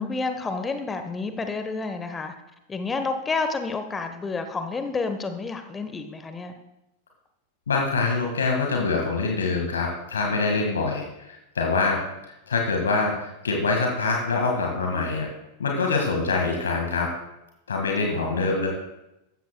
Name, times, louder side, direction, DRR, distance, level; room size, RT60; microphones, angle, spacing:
voice 1, 0.0-2.3 2.7-6.5 18.1-18.6, left 4 dB, 15° left, 8 dB, 1.1 m, -30 dB
voice 2, 7.7-12.0 12.5-15.3 15.6-17.1 17.7-18.7, left 4 dB, 70° left, 1 dB, 1.8 m, -25 dB
14.0 x 13.5 x 2.3 m, 0.90 s
figure-of-eight pair, 90°, 0 cm